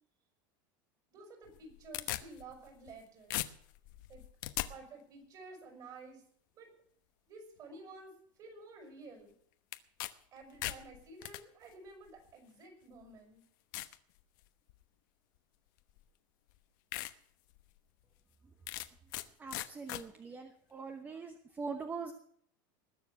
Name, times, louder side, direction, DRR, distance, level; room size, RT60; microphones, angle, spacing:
voice 1, 1.1-3.4 4.1-4.2 4.7-6.2 6.5-6.7 7.3-8.1 8.4-9.3 10.3-13.4, right 3 dB, 35° right, 3 dB, 5.8 m, -52 dB
sound 1, 1.5-3.0 3.3-4.7 9.7-10.1 10.4-11.4 12.3-12.4 13.0-13.1 13.7-14.0 14.5-14.8 16.0-16.1 16.5-16.6 16.9-17.1 17.6-17.7 18.7-19.3 19.5-20.0, left 17 dB, 70° left, 1.0 m, -39 dB
voice 2, 19.4-22.1, right 4 dB, 15° right, 6 dB, 1.0 m, -42 dB
20.0 x 7.1 x 7.1 m, 0.64 s
supercardioid pair, 150°, 11 cm